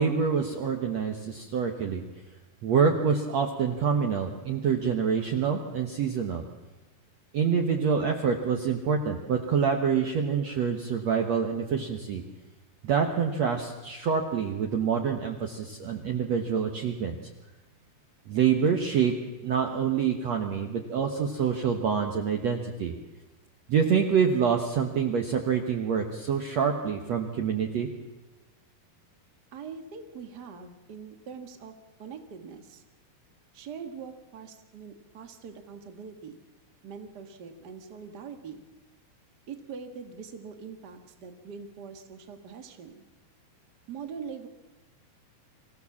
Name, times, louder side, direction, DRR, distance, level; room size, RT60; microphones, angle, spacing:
voice 1, 0.0-2.0 2.6-6.4 7.3-12.2 12.8-17.2 18.3-19.1 19.4-22.9 23.7-27.9, right 6 dB, 60° right, 3 dB, 1.9 m, -26 dB
voice 2, 29.5-31.7 32.0-32.8 33.5-36.4 36.8-38.6 39.5-43.0 43.9-44.5, right 6 dB, 80° right, 7 dB, 0.9 m, -43 dB
26.0 x 15.5 x 7.3 m, 1.2 s
omnidirectional pair, 4.6 m